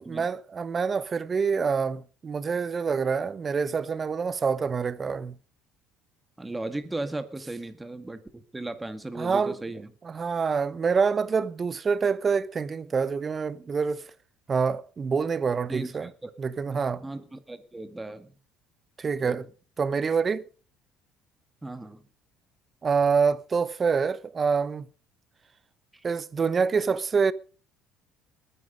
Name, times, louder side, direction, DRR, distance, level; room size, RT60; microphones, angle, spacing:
voice 1, 0.1-5.3 9.2-9.6 10.0-14.0 14.5-16.1 16.4-17.0 19.0-19.4 19.8-20.5 22.8-24.9 26.0-27.3, right 5 dB, 30° right, 0.9 m, -26 dB
voice 2, 6.4-9.9 15.7-16.3 17.0-18.4 19.2-19.4 21.6-22.0 25.9-26.0, right 2 dB, 10° right, 2.1 m, -36 dB
20.0 x 10.0 x 5.2 m
cardioid pair, 115°, 0 cm